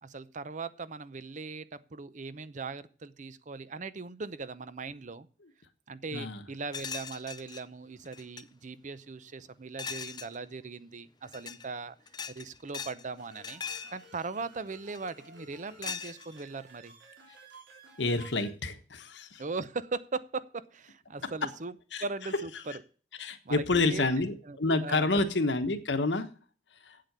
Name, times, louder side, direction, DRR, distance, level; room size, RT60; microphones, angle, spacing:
voice 1, 0.0-5.3 5.9-12.0 12.3-13.6 13.9-17.0 19.4-21.7 22.0-22.8 23.2-24.1 24.4-24.6 24.8-25.1, right 4 dB, 45° right, 15 dB, 0.7 m, -39 dB
sound 1, 6.7-7.6 8.1-8.4 9.8-10.4 11.2-11.7 12.1-13.0 13.3-14.0 14.9-15.3 15.8-16.5, left 6 dB, 25° left, 0.5 m, -39 dB
sound 2, 13.2-18.5, right 3 dB, 90° right, 3.5 m, -54 dB
voice 2, 18.0-19.4 21.9-22.0 23.2-26.3 26.9-27.0, left 3 dB, 80° left, 9 dB, 1.2 m, -28 dB
8.3 x 7.7 x 6.7 m, 0.40 s
head